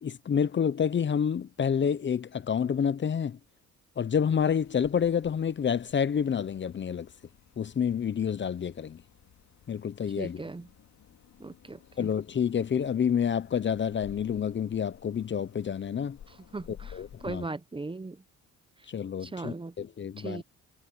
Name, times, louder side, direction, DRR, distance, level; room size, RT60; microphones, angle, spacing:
voice 1, 0.0-3.4 4.0-7.1 7.6-9.0 9.7-10.4 12.0-16.2 16.9-17.4 18.9-20.4, left 7 dB, 40° left, 0.8 m, -28 dB
sound 1, 4.2-17.4, left 9 dB, 65° left, 2.7 m, -54 dB
voice 2, 10.2-10.7 11.4-12.1 16.3-18.2 19.2-19.7 20.2-20.4, right 3 dB, 15° right, 0.9 m, -39 dB
cardioid pair, 90°, 30 cm